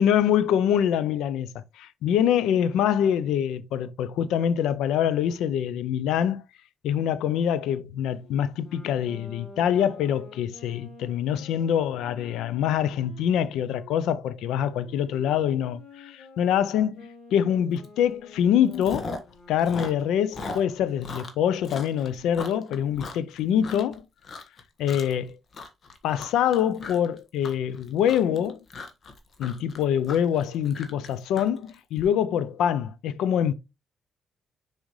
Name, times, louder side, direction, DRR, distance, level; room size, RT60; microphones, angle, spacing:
voice 1, 0.0-6.4 6.8-19.1 19.5-24.0 24.8-25.4 26.0-28.6 29.4-33.5, left 9 dB, 85° left, 0.5 m, -25 dB
Wind instrument woodwind instrument, 8.1-13.9 14.7-20.1, left 2 dB, 70° left, 2.6 m, -49 dB
Chewing mastication, 17.8-18.1 18.4-19.3 19.6-23.9 24.2-24.6 24.9-25.2 25.5-32.0, left 3 dB, 50° left, 1.5 m, -38 dB
6.5 x 4.9 x 3.1 m
cardioid pair, 90°, 0 cm